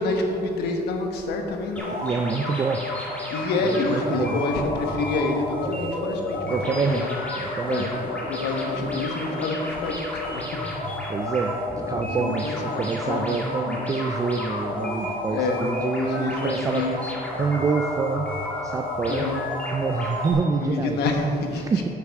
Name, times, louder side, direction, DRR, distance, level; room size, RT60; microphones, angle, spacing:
voice 1, 0.0-1.9 3.3-7.2 7.7-7.9 8.3-10.6 12.1-13.4 15.3-15.6 16.0-17.1 19.0-19.4 20.1-20.2 20.5-21.8, left 3 dB, 85° left, 3 dB, 1.2 m, -28 dB
sound 1, 1.8-20.3, left 2 dB, 10° left, 1.9 m, -31 dB
voice 2, 2.0-2.9 3.6-4.4 6.5-7.1 7.4-7.8 11.1-16.9 17.3-18.3 18.6-19.3 19.7-21.0 21.6-21.9, right 4 dB, 20° right, 5 dB, 0.3 m, -26 dB
9.8 x 8.2 x 3.5 m, 3.0 s
cardioid pair, 155°, 17 cm